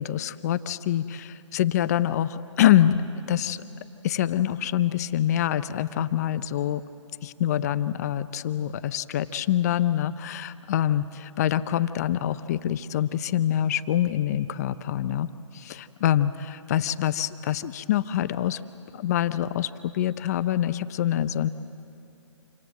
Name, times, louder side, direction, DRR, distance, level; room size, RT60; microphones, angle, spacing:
voice 1, 0.0-3.0 3.3-3.6 4.0-6.8 7.2-15.3 15.5-18.6 18.9-21.5, left 11 dB, 30° left, 13 dB, 0.6 m, -25 dB
27.5 x 25.5 x 7.7 m, 2.8 s
figure-of-eight pair, 140°, 16 cm